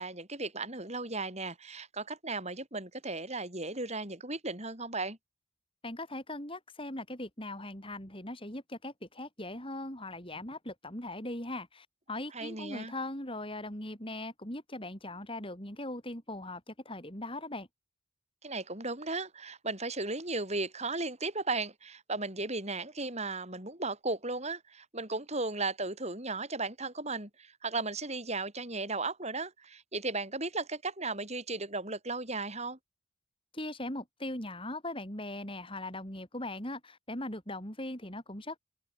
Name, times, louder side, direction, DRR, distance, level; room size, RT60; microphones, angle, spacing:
voice 1, 0.0-5.2 12.3-12.9 18.4-32.8, right 3 dB, 30° right, 7.2 m, -36 dB
voice 2, 5.8-17.7 33.5-38.6, left 1 dB, 25° left, 6.8 m, -40 dB
open air
head